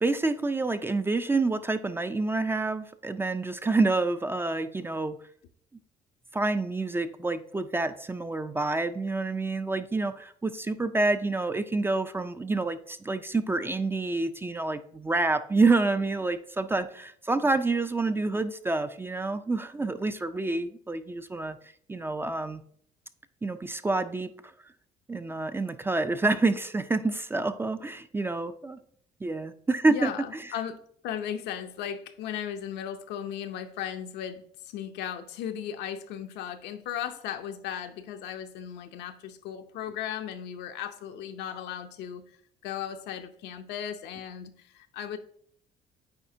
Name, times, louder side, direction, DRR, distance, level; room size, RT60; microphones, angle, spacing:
voice 1, 0.0-5.2 6.3-21.6 21.9-22.6 23.4-24.3 25.1-28.8 29.2-30.1, right 3 dB, 15° right, 0.3 m, -28 dB
voice 2, 29.9-42.2 42.6-45.2, left 9 dB, 85° left, 0.6 m, -36 dB
8.7 x 4.2 x 2.7 m
cardioid pair, 110°, 17 cm